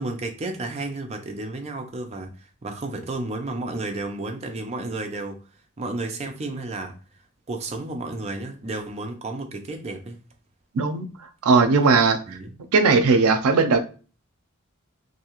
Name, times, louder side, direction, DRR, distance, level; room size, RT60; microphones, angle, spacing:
voice 1, 0.0-5.4 5.8-7.0 7.5-10.2 12.3-12.5, right 2 dB, 30° right, 0.4 m, -32 dB
voice 2, 10.7-11.1 11.4-12.2 12.7-13.8, right 4 dB, 90° right, 0.5 m, -18 dB
2.6 x 2.3 x 2.9 m
head